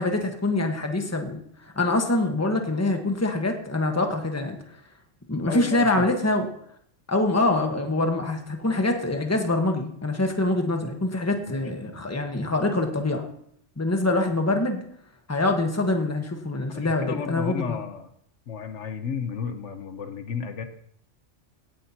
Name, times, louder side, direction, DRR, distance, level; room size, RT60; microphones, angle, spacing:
voice 1, 0.0-1.4 1.8-4.6 5.3-6.5 7.1-13.2 13.8-14.8 15.3-17.8, left 2 dB, 15° left, 3 dB, 1.3 m, -25 dB
voice 2, 5.5-6.1 11.5-12.0 16.7-18.1 18.5-20.6, left 6 dB, 75° left, 8 dB, 1.2 m, -33 dB
17.0 x 10.0 x 2.9 m, 0.67 s
omnidirectional pair, 1.3 m